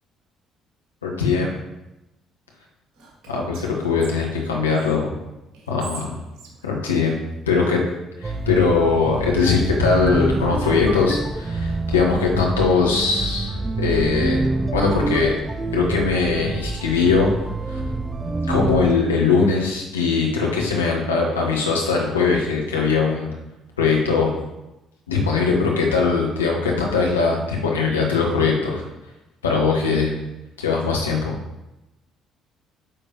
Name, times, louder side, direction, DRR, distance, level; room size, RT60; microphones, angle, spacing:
voice 1, 1.0-1.6 3.3-5.2 5.7-6.1 6.6-7.2 7.5-7.8 8.2-14.4 14.7-15.4 15.7-17.9 18.5-23.3 23.8-24.3 25.1-28.8 29.4-30.1 30.6-31.4, left 4 dB, 80° left, -1 dB, 1.2 m, -21 dB
Whispering, 2.9-4.9 5.5-7.7, right 4 dB, 55° right, 1.8 m, -44 dB
sound 1, 8.2-19.0, right 2 dB, 20° right, 0.6 m, -26 dB
8.9 x 5.2 x 2.9 m, 0.95 s
figure-of-eight pair, 50°, 0 cm